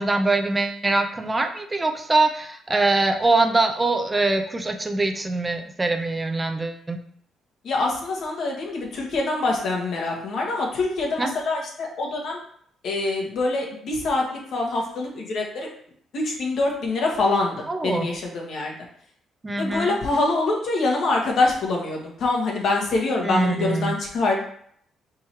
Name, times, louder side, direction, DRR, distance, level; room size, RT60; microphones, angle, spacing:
voice 1, 0.0-7.0 11.2-11.3 17.7-18.1 19.4-20.0 23.2-24.0, right 2 dB, 20° right, 5 dB, 0.5 m, -23 dB
voice 2, 7.6-12.4 12.8-15.7 16.1-18.7 19.6-24.4, left 2 dB, 70° left, -1 dB, 1.2 m, -25 dB
4.2 x 3.6 x 3.0 m, 0.63 s
cardioid pair, 90°, 0 cm